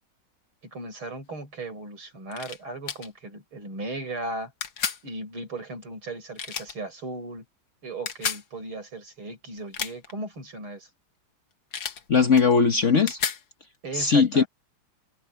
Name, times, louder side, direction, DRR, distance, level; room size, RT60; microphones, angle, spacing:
voice 1, 0.6-4.5 5.0-7.4 7.8-10.9 13.8-14.5, right 2 dB, 85° right, 7.9 m, -36 dB
sound 1, 2.3-2.6 2.9-3.1 4.6-5.0 6.4-6.8 8.1-8.4 9.6-10.1 11.7-12.0 12.4-13.4, left 7 dB, 65° left, 2.2 m, -31 dB
voice 2, 12.1-13.2 13.9-14.4, left 5 dB, 40° left, 1.3 m, -19 dB
omnidirectional pair, 2.3 m